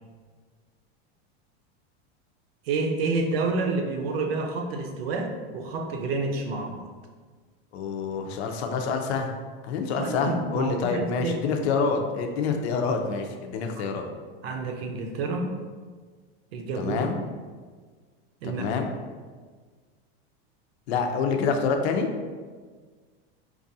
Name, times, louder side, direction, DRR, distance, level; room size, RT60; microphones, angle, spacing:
voice 1, 2.6-6.9 10.0-11.3 13.8-13.9 14.4-15.6 16.5-17.1 18.4-18.7, right 3 dB, 70° right, 4 dB, 0.6 m, -29 dB
voice 2, 7.7-9.3 9.6-14.1 16.8-17.2 18.5-18.9 20.9-22.1, left 5 dB, 85° left, 4 dB, 0.6 m, -27 dB
4.5 x 2.4 x 2.7 m, 1.5 s
supercardioid pair, 175°, 31 cm